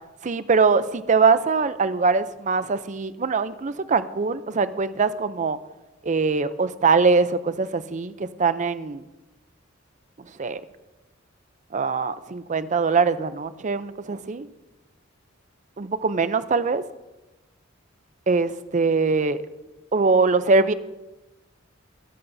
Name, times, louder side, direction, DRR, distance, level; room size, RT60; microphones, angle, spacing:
voice 1, 0.2-5.6 6.0-9.0 10.4-10.6 11.7-14.5 15.8-16.8 18.3-19.4 19.9-20.7, right 4 dB, 40° right, 13 dB, 0.5 m, -22 dB
21.0 x 11.5 x 2.7 m, 1.1 s
head